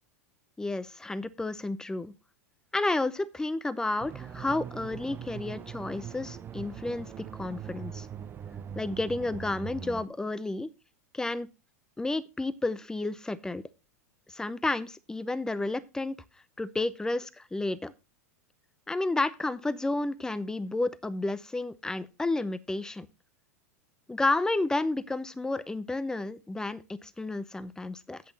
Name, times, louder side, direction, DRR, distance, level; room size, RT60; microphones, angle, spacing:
voice 1, 0.6-2.1 2.7-8.1 8.8-10.7 11.1-11.5 12.0-13.6 14.3-16.2 16.6-17.9 18.9-23.1 24.1-28.2, left 2 dB, 5° left, 17 dB, 0.7 m, -31 dB
sound 1, 4.0-10.1, right 8 dB, 25° right, 0.8 m, -41 dB
8.4 x 8.1 x 4.0 m, 0.28 s
hypercardioid pair, 100°, 8 cm